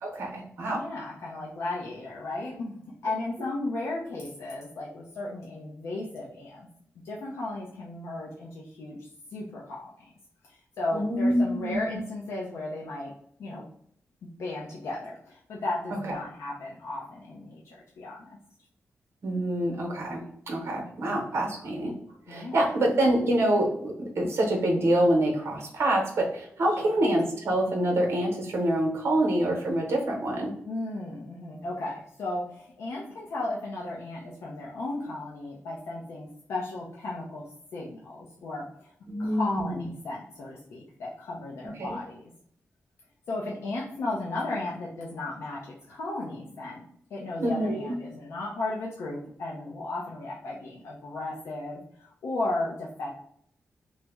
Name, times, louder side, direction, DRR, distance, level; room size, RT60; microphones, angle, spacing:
voice 1, 0.0-0.8 10.9-11.8 15.9-16.2 19.2-22.0 22.3-30.5 39.1-39.9 41.8-42.0 47.4-47.9, right 1 dB, 70° right, 0 dB, 0.8 m, -26 dB
voice 2, 0.7-2.8 3.0-6.7 7.0-10.1 10.4-13.1 13.4-13.6 14.4-18.4 22.3-22.6 26.8-26.9 30.7-37.4 37.7-38.9 39.2-42.3 43.3-46.8 47.1-53.1, left 2 dB, 85° left, -3 dB, 0.6 m, -35 dB
3.1 x 2.0 x 3.4 m, 0.66 s
wide cardioid pair, 100°, 5 cm